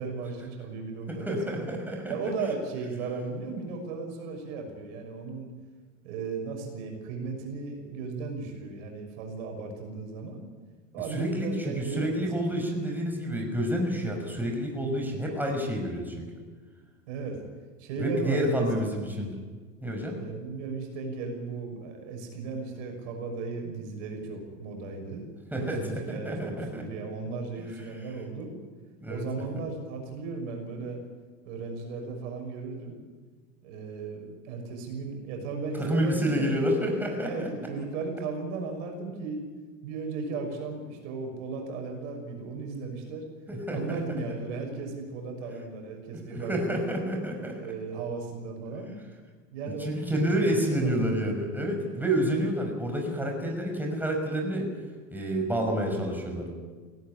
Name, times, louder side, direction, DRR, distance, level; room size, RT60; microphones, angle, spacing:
voice 1, 0.0-1.6 2.1-5.5 6.0-10.4 10.9-12.5 17.1-17.4 17.8-19.0 19.9-25.3 25.6-28.5 29.1-31.0 31.4-32.9 33.6-36.7 37.2-39.5 39.8-43.3 43.7-46.8 47.6-48.9 49.5-50.9, right 4 dB, 65° right, 3 dB, 6.3 m, -36 dB
voice 2, 1.1-2.1 11.1-16.3 18.0-19.3 19.8-20.2 25.5-26.8 29.0-29.2 35.8-37.5 43.5-44.0 46.3-47.6 49.8-54.7 55.1-56.5, equal, 5° right, 1 dB, 5.7 m, -29 dB
18.5 x 17.5 x 9.9 m, 1.4 s
hypercardioid pair, 95°, 38 cm